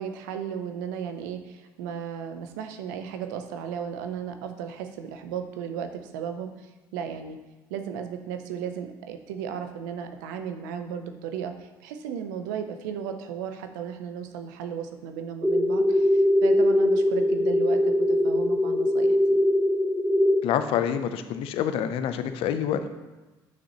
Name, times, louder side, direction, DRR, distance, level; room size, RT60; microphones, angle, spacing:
voice 1, 0.0-7.4 7.7-19.4, right 8 dB, 85° right, 7 dB, 0.6 m, -35 dB
sound 1, 15.4-20.4, left 1 dB, 5° right, 0.7 m, -21 dB
voice 2, 20.4-22.9, left 9 dB, 70° left, 10 dB, 0.6 m, -27 dB
7.3 x 6.2 x 3.0 m, 1.2 s
hypercardioid pair, 65°, 10 cm